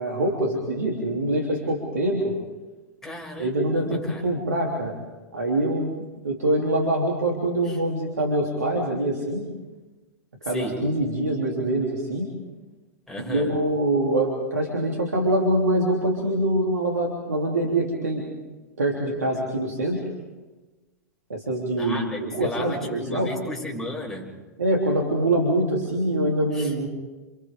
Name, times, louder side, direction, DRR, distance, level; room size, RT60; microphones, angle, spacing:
voice 1, 0.0-2.3 3.4-5.0 5.3-5.9 6.2-9.5 10.5-12.3 13.3-18.3 18.8-20.0 21.3-23.3 24.6-26.9, right 1 dB, 80° right, -1 dB, 3.5 m, -24 dB
voice 2, 3.0-4.2 7.6-7.8 10.5-10.8 13.1-13.5 21.8-24.3 26.5-26.7, left 1 dB, 5° left, -2 dB, 6.7 m, -34 dB
30.0 x 27.5 x 3.8 m, 1.2 s
figure-of-eight pair, 95°, 9 cm